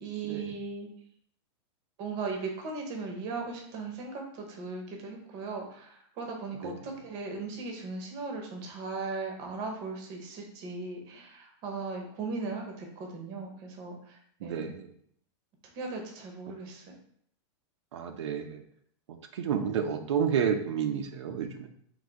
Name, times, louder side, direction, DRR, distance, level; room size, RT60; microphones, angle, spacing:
voice 1, 0.0-0.9 2.0-14.7 15.7-17.0, right 4 dB, 25° right, 2 dB, 0.7 m, -38 dB
voice 2, 14.4-14.9 17.9-18.6 19.3-21.7, right 7 dB, 85° right, 5 dB, 0.6 m, -30 dB
3.9 x 2.6 x 4.6 m, 0.65 s
supercardioid pair, 180°, 14 cm